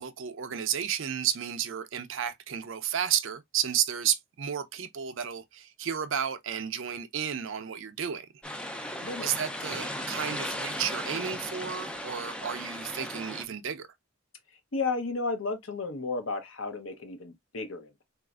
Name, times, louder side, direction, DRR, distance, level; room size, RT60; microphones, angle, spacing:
voice 1, 0.0-8.3 9.2-13.9, right 9 dB, 60° right, 0.5 m, -32 dB
sound 1, 8.4-13.4, equal, 5° left, 0.3 m, -36 dB
voice 2, 14.7-18.0, left 3 dB, 65° left, 0.7 m, -33 dB
4.0 x 2.4 x 2.3 m
head